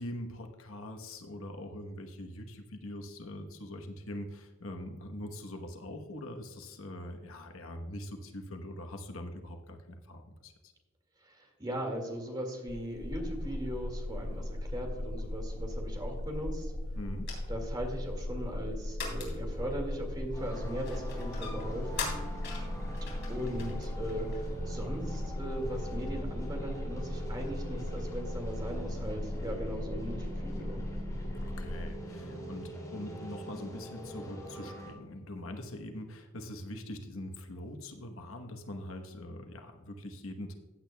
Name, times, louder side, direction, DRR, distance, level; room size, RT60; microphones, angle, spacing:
voice 1, 0.0-10.7 16.9-17.3 31.4-40.5, left 1 dB, 70° left, 5 dB, 1.1 m, -43 dB
voice 2, 11.2-16.7 17.5-22.1 23.3-30.8, equal, 20° right, 2 dB, 2.0 m, -39 dB
sound 1, 12.7-26.0, left 4 dB, 55° left, 3.4 m, -46 dB
sound 2, 13.0-31.9, left 1 dB, 35° left, 0.8 m, -38 dB
sound 3, 20.3-34.9, right 1 dB, 15° left, 3.1 m, -43 dB
15.5 x 8.6 x 2.3 m, 1.3 s
head